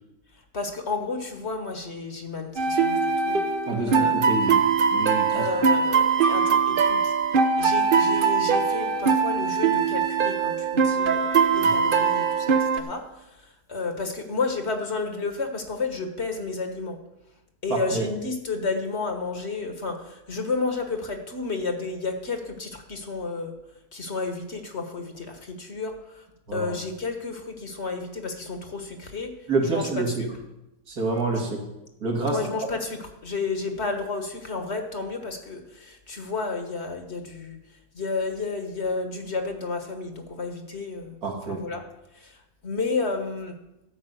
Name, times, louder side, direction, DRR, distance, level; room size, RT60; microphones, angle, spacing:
voice 1, 0.5-3.4 3.9-4.1 5.3-7.1 7.6-17.0 17.6-23.5 23.9-26.3 26.5-29.3 29.6-30.3 31.4-31.5 32.3-37.6 37.9-41.2 41.5-41.8 42.1-43.5, left 4 dB, 45° left, 5 dB, 1.5 m, -31 dB
sound 1, 2.6-12.8, right 5 dB, 45° right, 0.7 m, -22 dB
voice 2, 3.7-4.6 4.9-5.5 17.7-18.1 26.5-26.7 29.5-30.3 30.9-31.6 32.0-32.4 41.2-41.6, right 3 dB, 75° right, -1 dB, 2.6 m, -27 dB
13.0 x 5.4 x 7.8 m, 0.92 s
omnidirectional pair, 1.6 m